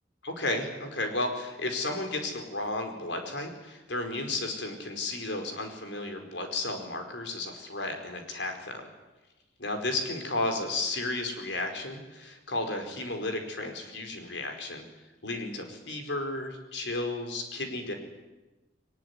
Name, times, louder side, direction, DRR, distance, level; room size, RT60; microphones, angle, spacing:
voice 1, 0.2-8.8 9.6-14.8 15.2-17.9, left 2 dB, 75° left, 5 dB, 4.9 m, -33 dB
22.0 x 20.0 x 9.7 m, 1.1 s
head